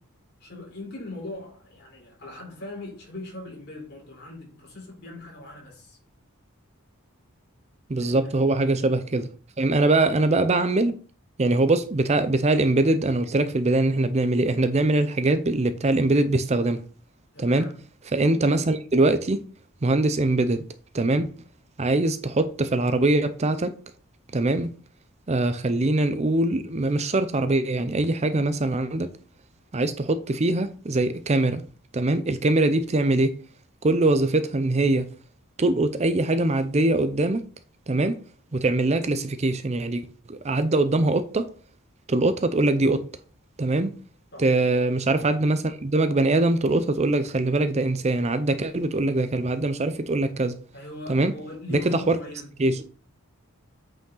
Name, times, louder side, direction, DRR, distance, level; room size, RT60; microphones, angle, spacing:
voice 1, 0.4-6.0 8.0-8.1 9.7-9.8 17.3-17.8 44.3-44.5 50.7-52.5, left 2 dB, 50° left, 3.9 m, -40 dB
voice 2, 7.9-9.3 9.6-10.9 11.4-16.8 17.4-17.7 18.1-19.4 19.8-20.7 20.9-21.3 21.8-23.8 24.3-24.7 25.3-29.1 29.7-31.6 31.9-33.4 33.8-35.1 35.6-37.4 37.9-38.2 38.5-41.5 42.1-43.1 43.6-43.9 44.4-50.6 51.1-51.3 51.7-52.2 52.6-52.8, right 2 dB, 30° right, 0.5 m, -22 dB
8.4 x 5.1 x 3.8 m
head